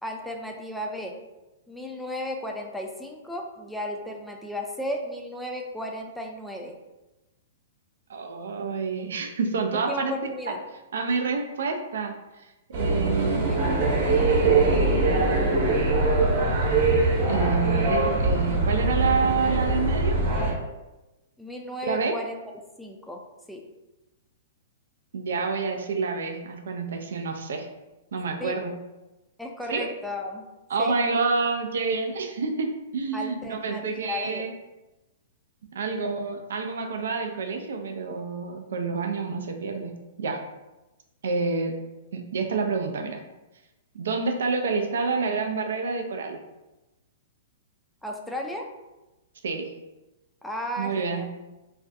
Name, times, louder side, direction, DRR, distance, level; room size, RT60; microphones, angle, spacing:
voice 1, 0.0-1.1 1.7-6.7 9.7-10.6 13.2-13.6 21.4-22.4 22.8-23.2 23.5-23.6 28.4-28.6 29.4-30.4 30.8-31.0 33.1-34.4 48.0-48.7 50.4-51.3, left 1 dB, 5° left, 1 dB, 0.4 m, -34 dB
voice 2, 8.1-10.1 10.5-10.6 10.9-12.1 12.7-13.8 17.3-20.2 21.8-22.1 25.1-27.7 28.1-28.7 29.7-29.9 30.7-34.5 35.7-39.9 40.2-40.4 41.2-41.7 42.1-43.2 43.9-46.4 49.4-49.7 50.8-51.2, right 4 dB, 75° right, 4 dB, 0.4 m, -28 dB
sound 1, 12.7-20.5, right 3 dB, 50° right, 0.8 m, -22 dB
2.4 x 2.2 x 2.5 m, 1.0 s
hypercardioid pair, 120°, 0 cm